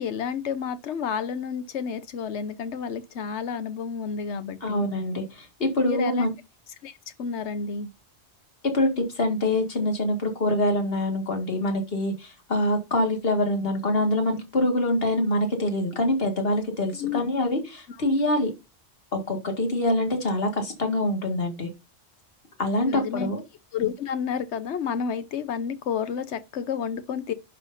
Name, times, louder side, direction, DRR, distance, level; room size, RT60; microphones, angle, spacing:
voice 1, 0.0-4.8 5.9-6.3 6.8-7.9 17.0-17.2 17.9-18.0 22.9-23.3 23.7-27.3, left 7 dB, 85° left, 1.1 m, -30 dB
voice 2, 4.6-6.3 8.7-18.5 19.1-21.7 22.6-23.4, left 1 dB, 60° left, 2.1 m, -25 dB
11.0 x 6.0 x 2.6 m
omnidirectional pair, 1.1 m